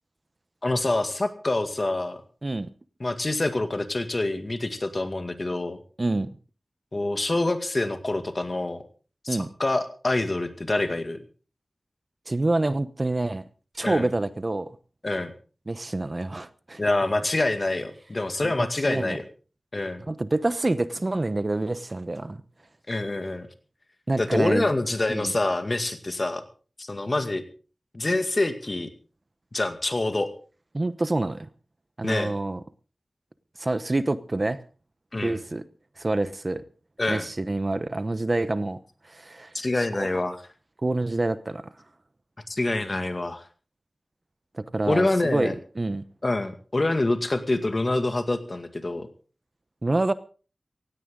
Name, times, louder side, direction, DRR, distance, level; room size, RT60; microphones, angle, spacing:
voice 1, 0.6-2.2 3.0-5.8 6.9-8.8 9.2-11.2 13.8-14.1 15.0-15.3 16.8-19.2 19.7-20.0 22.9-23.5 24.2-26.4 26.8-27.4 27.9-28.9 29.5-30.3 32.0-32.4 35.1-35.4 37.0-37.3 39.5-40.4 42.5-43.4 44.9-45.6 46.2-49.1, left 2 dB, 40° left, 2.1 m, -26 dB
voice 2, 6.0-6.3 9.3-9.5 12.3-13.4 13.7-14.7 15.7-16.8 18.4-18.5 18.9-19.2 20.1-22.4 24.1-24.7 25.1-25.3 30.7-31.5 32.0-32.6 33.6-34.6 35.2-35.6 36.0-36.6 37.1-38.8 39.1-40.1 40.8-41.7 44.5-46.0 49.8-50.1, right 2 dB, 40° right, 0.9 m, -27 dB
17.0 x 16.5 x 3.8 m
wide cardioid pair, 70°, 0 cm